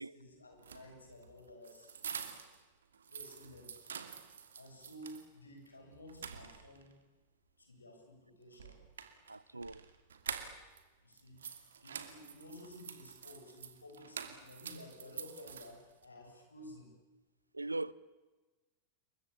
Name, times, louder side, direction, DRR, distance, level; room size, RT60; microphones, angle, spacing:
voice 1, 0.0-1.9 3.1-3.7 4.2-7.0 7.6-8.8 11.0-11.5 11.8-17.0, left 1 dB, 80° left, 7.8 m, -53 dB
sound 1, 0.5-2.6 2.9-5.3 5.7-5.8 6.1-6.9 8.5-10.8 11.1-16.0, right 7 dB, 65° right, 2.7 m, -47 dB
voice 2, 9.3-9.8 17.5-17.9, right 2 dB, 80° right, 0.8 m, -40 dB
28.5 x 23.5 x 8.7 m
figure-of-eight pair, 90°, 0 cm